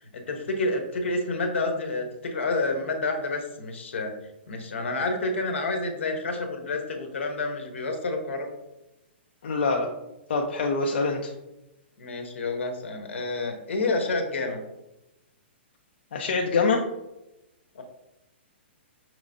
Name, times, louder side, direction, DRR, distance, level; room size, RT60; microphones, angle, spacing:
voice 1, 0.1-4.1 4.5-8.5 12.0-14.6 17.7-17.8, left 2 dB, 90° left, 4 dB, 1.0 m, -29 dB
voice 2, 9.4-9.9 10.3-11.3 16.1-16.8, left 4 dB, 65° left, 1 dB, 0.6 m, -24 dB
6.1 x 3.1 x 2.6 m, 0.94 s
hypercardioid pair, 165°, 6 cm